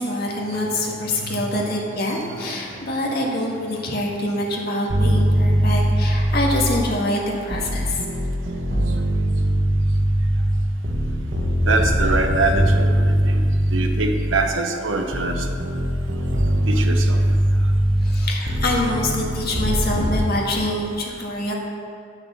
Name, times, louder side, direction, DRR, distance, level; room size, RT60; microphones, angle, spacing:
voice 1, 0.0-8.0 18.0-21.5, left 1 dB, 55° left, -1 dB, 1.7 m, -25 dB
voice 2, 1.1-1.4 2.2-2.6 11.6-12.9 13.2-13.4 13.7-15.4 16.7-17.2, right 3 dB, 80° right, 5 dB, 1.0 m, -24 dB
sound 1, 4.9-7.1 7.5-14.6 15.1-20.1, right 1 dB, 55° right, 1.2 m, -21 dB
8.8 x 6.5 x 7.0 m, 2.3 s
head